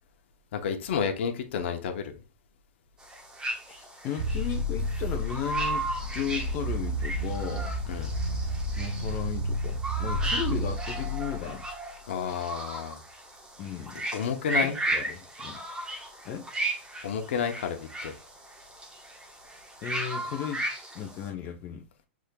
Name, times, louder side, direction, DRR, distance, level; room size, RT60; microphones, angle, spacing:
voice 1, 0.5-2.2 7.9-8.1 12.1-13.0 14.1-14.8 17.0-18.1, left 7 dB, 65° left, 0.9 m, -30 dB
sound 1, 3.0-21.3, right 2 dB, 10° right, 1.1 m, -36 dB
voice 2, 3.7-7.7 8.8-11.7 13.6-14.1 14.6-15.6 16.2-16.5 19.8-20.6 20.9-21.9, left 9 dB, 35° left, 0.6 m, -35 dB
sound 2, 4.2-11.7, equal, 90° right, 0.9 m, -31 dB
6.3 x 3.6 x 2.2 m
hypercardioid pair, 135°, 7 cm